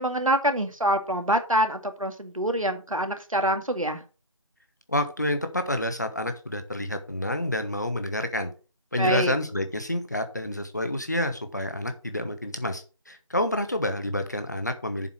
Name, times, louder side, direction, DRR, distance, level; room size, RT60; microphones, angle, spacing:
voice 1, 0.0-4.0 9.0-9.3, right 1 dB, 75° right, 8 dB, 2.0 m, -25 dB
voice 2, 4.9-8.5 8.9-15.1, left 1 dB, 35° left, 8 dB, 1.0 m, -28 dB
7.5 x 5.4 x 6.1 m, 0.35 s
figure-of-eight pair, 170°, 17 cm